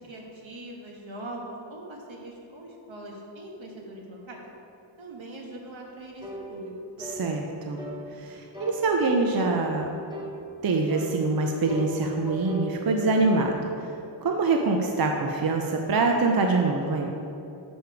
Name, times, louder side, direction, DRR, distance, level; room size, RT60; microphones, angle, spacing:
voice 1, 0.0-4.4 5.0-6.7, right 1 dB, 75° right, -1 dB, 1.4 m, -41 dB
sound 1, 6.2-6.5 7.0-7.2 7.8-8.0 8.5-8.8 9.3-9.6 10.1-10.4 10.9-11.1 11.7-13.5, left 1 dB, 10° right, 1.2 m, -37 dB
voice 2, 7.0-7.8 8.1-9.9 10.6-13.7 14.2-17.1, right 3 dB, 50° right, 2 dB, 0.6 m, -24 dB
6.7 x 6.2 x 4.7 m, 2.7 s
wide cardioid pair, 85°, 47 cm